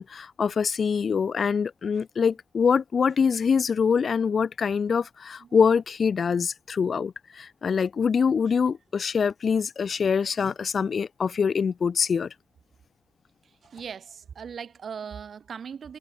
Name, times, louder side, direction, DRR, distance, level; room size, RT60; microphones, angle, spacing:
voice 1, 0.0-12.3, left 6 dB, 50° left, 1.5 m, -24 dB
voice 2, 13.6-16.0, right 7 dB, 55° right, 5.5 m, -39 dB
wide cardioid pair, 165°, 0 cm